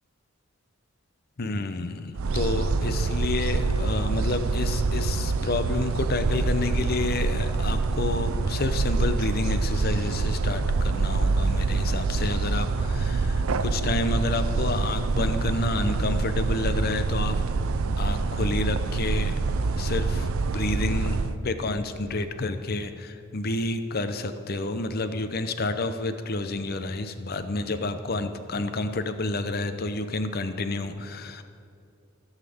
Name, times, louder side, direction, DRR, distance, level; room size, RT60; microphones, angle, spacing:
voice 1, 1.4-17.4 18.0-19.3 19.7-20.3 20.5-31.4, left 2 dB, 45° left, 10 dB, 0.7 m, -29 dB
sound 1, 2.2-21.4, right 3 dB, 90° right, 0.5 m, -26 dB
15.0 x 5.7 x 7.1 m, 2.5 s
head